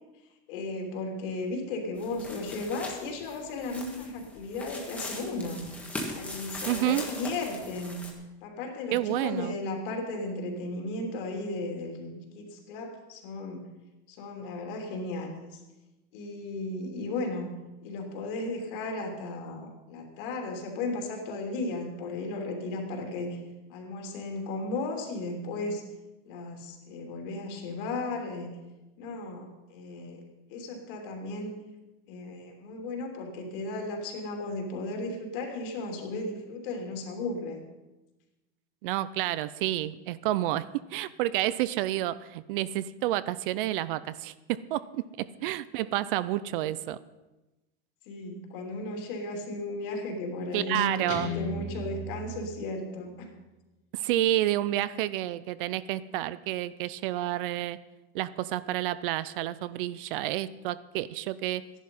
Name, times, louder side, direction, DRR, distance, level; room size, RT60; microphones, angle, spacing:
voice 1, 0.5-5.7 6.1-8.1 8.4-13.6 14.1-15.6 16.1-17.5 17.8-23.4 23.7-25.8 26.2-28.6 29.0-30.2 30.5-31.6 32.1-37.6 48.0-53.3, left 2 dB, 60° left, 2 dB, 3.0 m, -35 dB
sound 1, 2.0-8.1, left 1 dB, 5° left, 1.4 m, -40 dB
voice 2, 6.7-7.1 8.9-9.5 38.8-47.0 50.5-51.3 53.9-57.8 58.1-61.6, right 14 dB, 60° right, 17 dB, 0.6 m, -30 dB
Guitar, 51.1-53.1, left 1 dB, 85° left, 3.8 m, -37 dB
13.5 x 11.0 x 5.5 m, 1.1 s
supercardioid pair, 180°, 31 cm